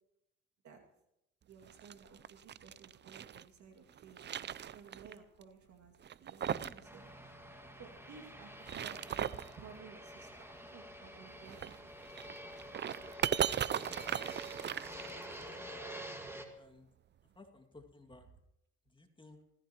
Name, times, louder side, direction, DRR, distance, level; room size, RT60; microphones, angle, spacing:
voice 1, 1.4-7.0 7.8-11.7, right 5 dB, 60° right, 2 dB, 2.3 m, -56 dB
sound 1, 1.6-3.4 3.9-5.1 5.4-5.5 6.0-6.8 7.1-7.2 8.4-9.5 11.5-15.5, right 9 dB, 35° right, 0.5 m, -38 dB
voice 2, 6.5-6.8 15.2-15.5 16.6-16.9 17.4-18.3 18.9-19.4, left 2 dB, 15° left, 3 dB, 2.2 m, -57 dB
Fixed-wing aircraft airplane, 6.8-16.4, right 1 dB, 10° right, 2.1 m, -48 dB
27.5 x 14.5 x 3.0 m, 0.87 s
supercardioid pair, 70°, 32 cm